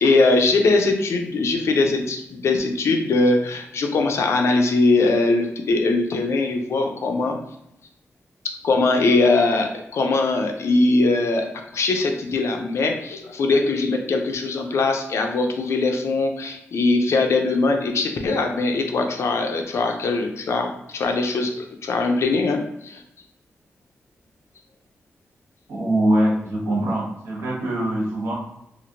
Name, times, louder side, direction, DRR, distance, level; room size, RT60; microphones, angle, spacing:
voice 1, 0.0-7.4 8.6-11.5 11.7-23.0, left 3 dB, 75° left, 3 dB, 0.5 m, -21 dB
voice 2, 25.7-28.3, right 1 dB, 80° right, -4 dB, 1.2 m, -22 dB
2.8 x 2.5 x 2.8 m, 0.81 s
wide cardioid pair, 100°, 5 cm